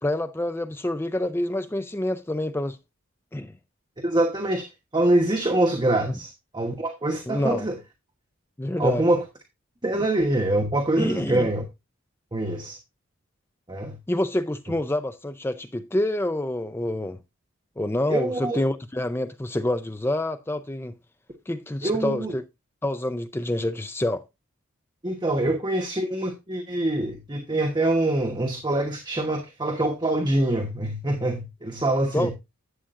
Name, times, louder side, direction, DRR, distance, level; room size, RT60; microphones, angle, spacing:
voice 1, 0.0-2.8 3.3-3.5 6.1-6.2 7.3-7.7 8.6-9.0 10.0-10.1 11.0-11.5 14.1-17.2 17.8-20.9 21.5-22.4 22.8-24.2 32.1-32.3, left 1 dB, 10° left, 0.4 m, -27 dB
voice 2, 4.0-4.7 4.9-7.8 8.8-9.2 9.8-11.6 12.3-12.8 13.7-13.9 18.1-18.6 21.8-22.3 25.0-32.3, right 1 dB, 20° right, 1.1 m, -24 dB
11.5 x 8.4 x 2.5 m
head